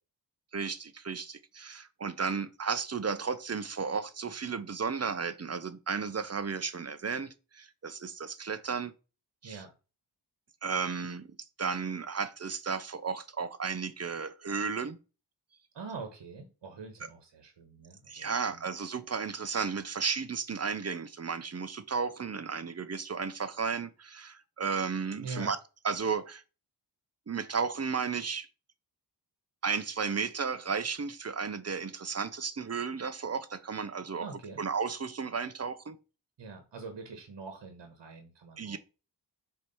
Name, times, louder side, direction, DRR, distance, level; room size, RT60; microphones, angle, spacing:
voice 1, 0.5-8.9 9.4-9.6 10.6-11.3 11.6-15.0 18.1-25.6 25.8-26.4 27.3-28.5 29.6-34.3 34.6-36.0 38.6-38.8, right 5 dB, 35° right, 0.8 m, -34 dB
voice 2, 15.7-18.6 25.2-25.5 34.2-34.6 36.4-38.8, right 4 dB, 75° right, 1.5 m, -44 dB
4.9 x 4.4 x 5.5 m
cardioid pair, 75°, 43 cm